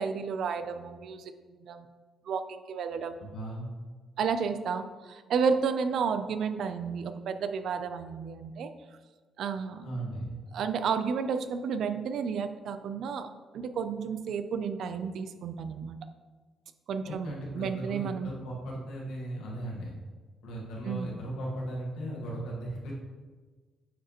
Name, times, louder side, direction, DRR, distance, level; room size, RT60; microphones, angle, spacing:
voice 1, 0.0-1.8 2.3-3.2 4.2-8.7 9.4-9.9 10.5-16.0 16.9-18.3 20.8-21.1, right 6 dB, 70° right, 9 dB, 0.5 m, -32 dB
voice 2, 3.2-3.7 9.8-10.4 17.0-20.0 20.4-22.9, right 1 dB, 90° left, -4 dB, 2.0 m, -37 dB
9.0 x 4.8 x 3.0 m, 1.4 s
cardioid pair, 90°, 0 cm